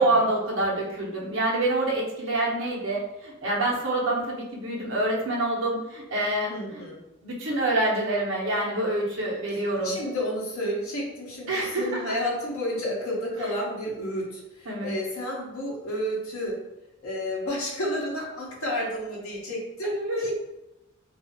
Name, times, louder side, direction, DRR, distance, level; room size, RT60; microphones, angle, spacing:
voice 1, 0.0-6.8 7.2-9.9 11.5-12.0 14.7-14.9 19.8-20.3, right 2 dB, 65° right, -3 dB, 0.7 m, -26 dB
voice 2, 6.5-7.0 9.5-16.6 17.0-20.3, equal, 85° left, -4 dB, 0.8 m, -31 dB
2.7 x 2.4 x 2.7 m, 0.92 s
head